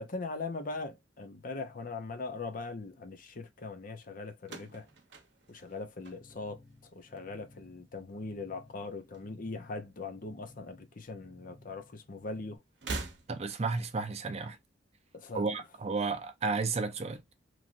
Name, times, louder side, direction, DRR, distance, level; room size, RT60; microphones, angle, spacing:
voice 1, 0.0-4.9 5.5-6.6 6.9-12.6 15.1-15.5, left 3 dB, 50° left, 0.6 m, -40 dB
sound 1, 4.4-6.8 7.1-7.7 8.7-9.7 10.0-10.1 11.2-11.3 12.7-13.7, right 3 dB, 70° right, 0.8 m, -43 dB
sound 2, 6.1-12.6, left 2 dB, 10° right, 1.1 m, -58 dB
voice 2, 13.3-14.6 15.3-17.2, right 4 dB, 35° right, 0.5 m, -32 dB
3.1 x 2.5 x 2.5 m
head